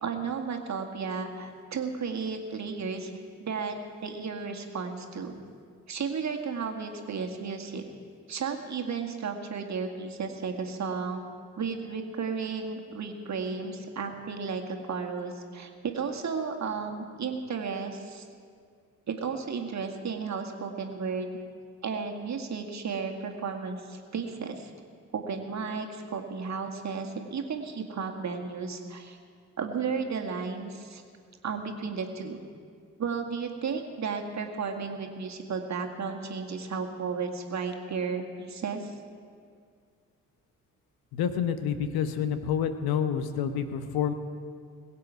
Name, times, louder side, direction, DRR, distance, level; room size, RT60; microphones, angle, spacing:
voice 1, 0.0-5.3 5.9-7.8 8.3-11.2 11.6-18.3 19.1-21.4 21.8-24.7 25.1-29.2 29.6-31.0 31.4-32.4 33.0-38.9, right 5 dB, 40° right, 3 dB, 1.9 m, -33 dB
voice 2, 41.1-44.1, left 8 dB, 60° left, 10 dB, 1.0 m, -28 dB
21.5 x 8.6 x 4.8 m, 2.1 s
figure-of-eight pair, 45°, 42 cm